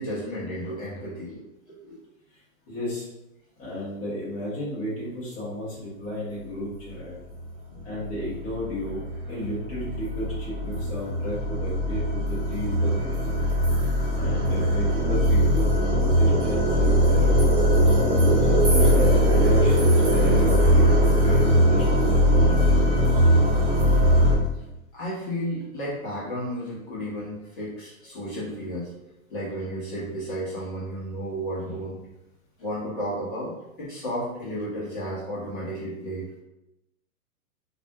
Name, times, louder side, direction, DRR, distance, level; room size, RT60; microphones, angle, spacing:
voice 1, 0.0-1.4 1.7-2.0 7.7-7.9 24.5-24.7 24.9-28.9 29.3-32.0 32.6-36.3, equal, 35° left, -7 dB, 1.0 m, -33 dB
voice 2, 2.7-3.1 3.6-7.2 7.8-13.4 13.8-13.9 14.1-17.3 17.9-23.4, left 1 dB, 15° left, -9 dB, 1.0 m, -33 dB
sound 1, 7.4-7.5 8.0-24.4, equal, 40° right, 1.4 m, -20 dB
4.1 x 2.5 x 2.2 m, 0.90 s
hypercardioid pair, 150°, 45 cm